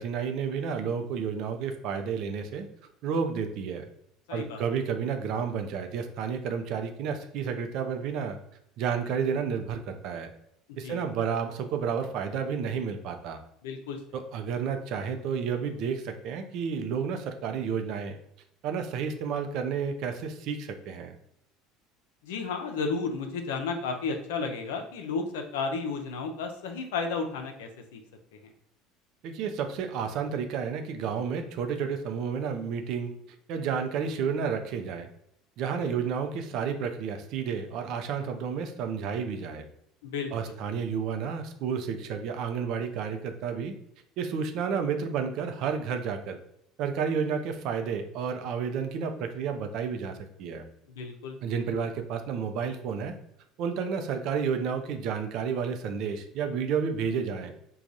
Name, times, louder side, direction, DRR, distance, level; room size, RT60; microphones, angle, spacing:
voice 1, 0.0-2.7 3.0-3.9 4.3-8.4 8.8-10.3 10.8-13.4 14.1-18.2 18.6-21.1 29.2-33.1 33.5-35.1 35.6-39.7 40.3-43.7 44.2-46.4 46.8-50.7 51.4-53.2 53.6-57.5, right 6 dB, 65° right, 6 dB, 0.5 m, -31 dB
voice 2, 4.3-4.6 10.8-11.0 13.6-14.0 22.2-28.0 40.0-40.6 50.9-51.4, left 4 dB, 90° left, 5 dB, 0.5 m, -33 dB
4.7 x 2.3 x 2.6 m, 0.77 s
supercardioid pair, 95°, 0 cm